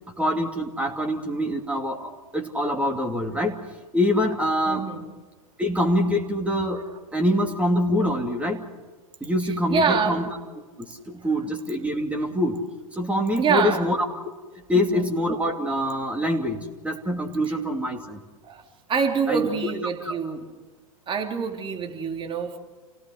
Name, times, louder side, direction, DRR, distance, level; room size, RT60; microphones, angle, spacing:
voice 1, 0.2-3.6 3.9-4.8 5.6-6.8 7.1-8.6 9.2-10.2 10.8-12.6 12.9-14.1 14.7-18.2 19.3-19.5 20.0-20.2, equal, 5° right, 2 dB, 2.7 m, -25 dB
voice 2, 4.7-5.0 9.4-10.3 11.2-11.3 13.4-13.9 14.7-15.1 17.5-17.6 18.4-18.6 18.9-20.4 21.1-22.6, right 5 dB, 25° right, 3 dB, 3.3 m, -26 dB
28.5 x 17.5 x 6.5 m, 1.3 s
hypercardioid pair, 105°, 18 cm